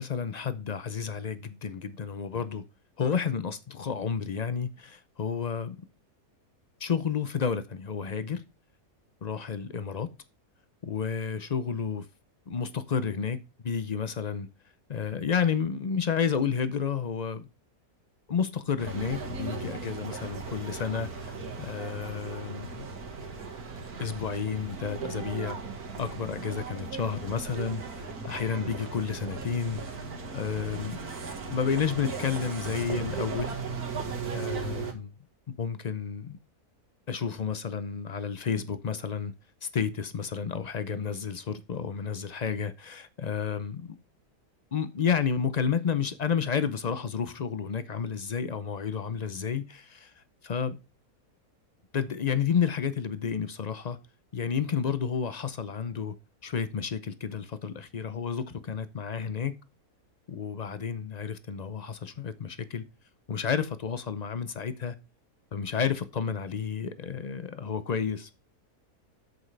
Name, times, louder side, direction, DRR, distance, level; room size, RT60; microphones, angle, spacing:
voice 1, 0.0-2.6 3.0-5.8 6.8-8.4 9.2-10.1 10.8-12.1 12.5-13.4 13.6-14.5 14.9-17.5 18.3-22.9 24.0-25.6 26.0-30.1 30.3-31.0 31.5-33.6 34.3-35.1 35.6-36.4 37.1-39.3 39.6-44.0 44.7-50.8 51.9-54.0 54.3-56.1 56.4-59.6 60.3-62.8 63.3-65.0 65.5-68.3, left 6 dB, 55° left, 0.4 m, -31 dB
sound 1, 18.8-34.9, right 4 dB, 80° right, 2.1 m, -37 dB
7.9 x 7.9 x 3.2 m
omnidirectional pair, 1.6 m